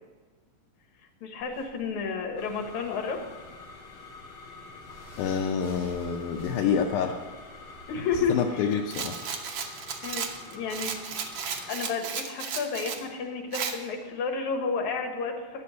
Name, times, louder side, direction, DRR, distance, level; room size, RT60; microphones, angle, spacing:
voice 1, 1.2-3.2 7.9-8.8 10.0-10.9 11.7-15.6, left 5 dB, 70° left, 3 dB, 2.8 m, -31 dB
sound 1, 1.4-8.2, right 1 dB, 5° right, 3.8 m, -52 dB
sound 2, 2.4-11.7, left 4 dB, 45° left, 2.6 m, -46 dB
voice 2, 5.2-7.1 8.3-9.2, left 7 dB, 85° left, 2 dB, 2.3 m, -27 dB
Rattle, 8.9-13.0 13.5-13.8, right 7 dB, 65° right, 1.6 m, -34 dB
10.5 x 7.0 x 9.3 m, 1.4 s
omnidirectional pair, 3.5 m